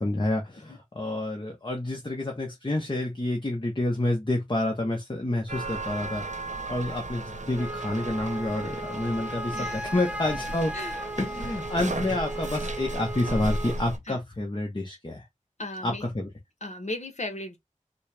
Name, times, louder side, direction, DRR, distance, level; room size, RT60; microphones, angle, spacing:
voice 1, 0.0-6.2 6.7-10.7 11.2-15.3 15.8-16.3, left 1 dB, 40° left, 1.0 m, -29 dB
sound 1, 5.5-14.0, right 2 dB, 70° right, 0.9 m, -36 dB
Wind instrument woodwind instrument, 7.5-13.8, right 1 dB, 10° right, 0.5 m, -36 dB
voice 2, 9.5-9.9 10.7-11.0 14.1-14.2 15.6-16.0 16.6-17.6, left 1 dB, 65° left, 1.0 m, -35 dB
4.3 x 2.2 x 3.2 m
wide cardioid pair, 45°, 13 cm